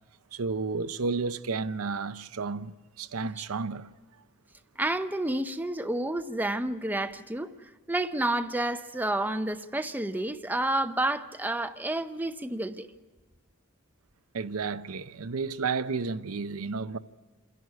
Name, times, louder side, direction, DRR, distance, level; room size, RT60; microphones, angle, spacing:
voice 1, 0.3-3.9 14.3-17.0, right 4 dB, 80° right, 0.6 m, -32 dB
voice 2, 4.8-12.9, right 1 dB, 10° right, 0.6 m, -30 dB
28.0 x 11.0 x 9.4 m
head